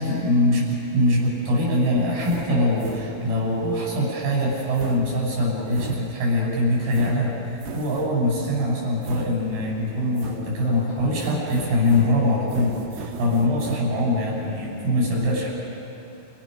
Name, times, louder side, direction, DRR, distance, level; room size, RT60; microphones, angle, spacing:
voice 1, 0.0-15.5, left 1 dB, 55° right, -3 dB, 8.9 m, -23 dB
sound 1, 2.0-3.5 4.5-6.5 6.9-8.3 9.0-9.8 10.2-10.8 11.2-13.8, right 6 dB, 80° right, 3.6 m, -39 dB
29.5 x 29.0 x 6.6 m, 2.9 s
omnidirectional pair, 5.1 m